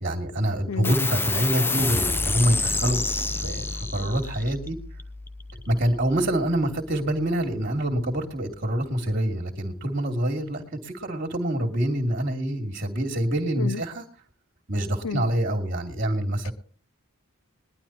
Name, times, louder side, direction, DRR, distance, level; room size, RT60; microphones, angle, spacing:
voice 1, 0.0-4.8 5.7-14.0 14.7-16.5, right 1 dB, 40° right, 2.5 m, -26 dB
voice 2, 0.7-0.9 13.6-13.8 15.0-15.2 16.4-16.5, left 5 dB, 70° left, 0.5 m, -31 dB
sound 1, 0.8-7.7, left 3 dB, 10° left, 0.6 m, -29 dB
21.0 x 12.0 x 3.0 m
head